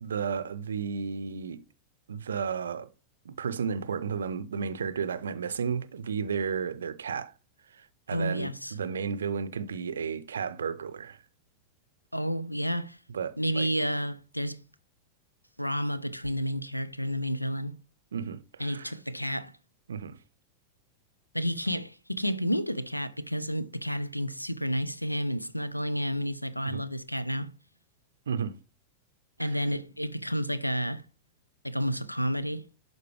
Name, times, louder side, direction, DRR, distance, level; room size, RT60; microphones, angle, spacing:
voice 1, 0.0-1.6 2.1-2.9 3.2-7.3 7.7-11.2 13.1-13.7 18.1-18.9 19.9-20.2 26.6-26.8 28.3-28.6 29.4-29.6, right 6 dB, 70° right, 0.5 m, -33 dB
voice 2, 8.1-8.7 12.1-13.0 13.4-14.6 15.6-17.7 18.6-19.5 21.3-27.5 29.4-31.0 31.6-32.6, equal, 90° left, 0.5 m, -30 dB
11.5 x 4.0 x 3.3 m
figure-of-eight pair, 90°, 0 cm